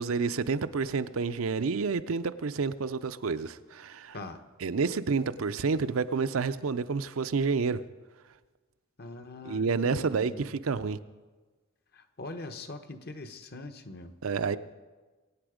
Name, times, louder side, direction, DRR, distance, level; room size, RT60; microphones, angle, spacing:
voice 1, 0.0-4.2 4.6-7.8 9.4-11.0 14.2-14.6, right 4 dB, 75° right, 0.5 m, -29 dB
voice 2, 9.0-10.5 11.9-14.1, left 2 dB, 50° left, 1.1 m, -42 dB
22.5 x 8.7 x 5.0 m
head